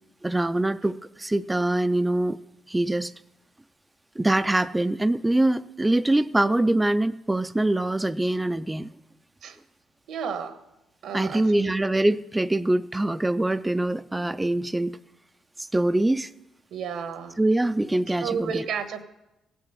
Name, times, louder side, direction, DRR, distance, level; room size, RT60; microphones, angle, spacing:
voice 1, 0.2-2.4 2.7-3.1 4.2-8.9 11.1-15.0 15.6-16.3 17.4-18.7, right 1 dB, 10° right, 12 dB, 0.3 m, -24 dB
voice 2, 10.1-10.6 11.0-11.7 16.7-17.4 18.2-19.0, right 6 dB, 75° right, 10 dB, 1.3 m, -32 dB
16.0 x 6.9 x 7.6 m, 0.95 s
cardioid pair, 90°, 0 cm